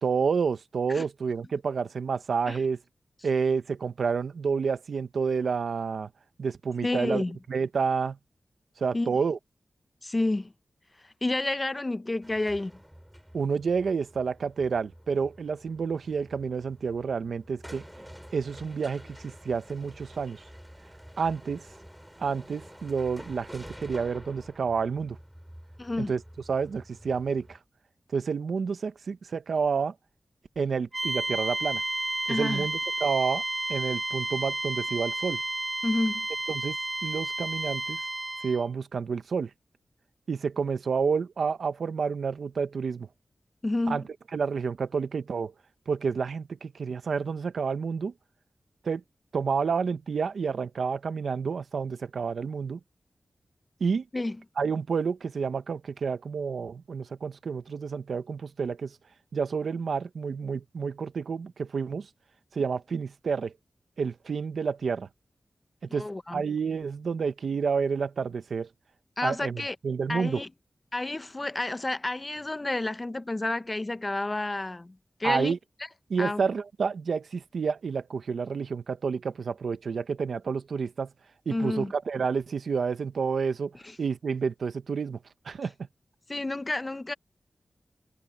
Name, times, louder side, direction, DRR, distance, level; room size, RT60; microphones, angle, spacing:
voice 1, 0.0-2.8 3.2-6.1 6.4-7.2 7.5-8.2 8.8-9.4 13.3-17.8 18.3-20.4 21.2-21.7 22.2-25.2 26.0-26.2 26.5-27.6 28.1-29.9 30.6-31.8 32.3-33.4 33.7-35.4 36.5-36.8 37.0-38.0 38.4-39.5 40.3-43.1 43.9-44.0 44.3-45.5 45.9-48.1 48.8-49.0 49.3-52.8 53.8-54.0 54.6-59.0 59.3-62.1 62.5-63.5 64.0-65.1 65.9-68.7 69.2-70.4 75.2-75.6 76.1-81.1 81.5-85.2 85.4-85.7, right 5 dB, 85° right, 1.0 m, -29 dB
voice 2, 6.8-7.4 8.9-9.1 10.0-10.5 11.2-12.7 25.8-26.1 32.3-32.7 35.8-36.3 43.6-44.0 54.1-54.4 65.9-66.4 69.2-69.8 70.1-70.5 70.9-75.6 76.2-76.4 81.5-81.9 83.8-83.9 86.3-87.1, left 2 dB, 30° left, 0.8 m, -30 dB
sound 1, 12.2-27.6, equal, 5° right, 4.3 m, -49 dB
sound 2, 30.9-38.7, right 2 dB, 30° right, 0.6 m, -31 dB
wide cardioid pair, 85°, 0 cm